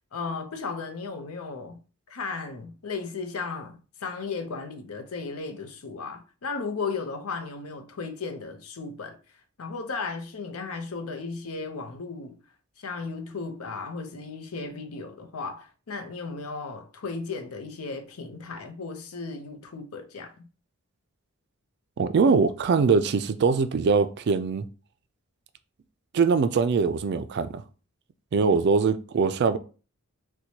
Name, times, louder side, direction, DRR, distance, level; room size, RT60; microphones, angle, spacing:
voice 1, 0.1-1.8 2.1-9.2 9.6-12.4 12.8-20.5, left 4 dB, 85° left, 0.6 m, -35 dB
voice 2, 22.0-24.6 26.1-27.6 28.3-29.6, right 5 dB, 50° right, 0.3 m, -22 dB
4.3 x 2.2 x 2.8 m
head